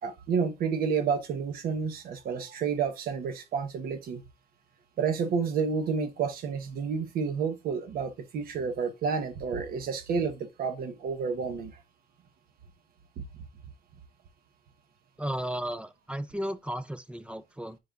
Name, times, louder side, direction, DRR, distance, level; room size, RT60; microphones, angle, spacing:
voice 1, 0.0-4.2 5.0-11.7, right 6 dB, 60° right, 1.1 m, -30 dB
voice 2, 15.2-17.8, equal, 5° right, 0.4 m, -34 dB
9.8 x 3.9 x 2.4 m
cardioid pair, 110°, 17 cm